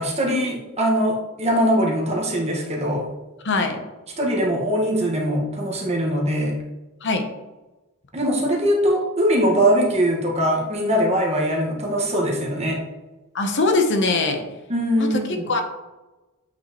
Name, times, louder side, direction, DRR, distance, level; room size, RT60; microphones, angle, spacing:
voice 1, 0.0-3.1 4.2-6.5 8.1-12.8 14.7-15.5, equal, 30° right, -1 dB, 1.5 m, -21 dB
voice 2, 3.4-3.8 7.0-7.2 13.3-14.4 15.0-15.2 15.5-15.6, left 3 dB, 60° left, 5 dB, 0.9 m, -21 dB
8.5 x 5.3 x 3.0 m, 1.1 s
head